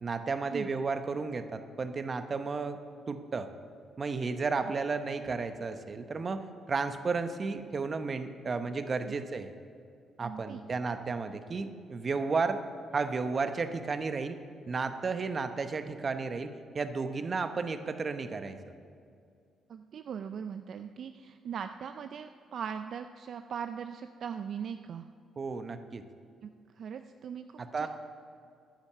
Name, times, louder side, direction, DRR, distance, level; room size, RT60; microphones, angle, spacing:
voice 1, 0.0-2.8 3.1-3.5 4.0-9.5 10.2-12.6 12.9-14.4 14.7-18.6 25.4-26.0 27.6-27.9, right 4 dB, 40° right, 9 dB, 0.8 m, -33 dB
voice 2, 10.2-10.6 19.7-25.1 26.4-26.5 26.7-27.9, right 7 dB, 60° right, 8 dB, 0.4 m, -40 dB
10.5 x 9.9 x 6.8 m, 2.3 s
cardioid pair, 90°, 0 cm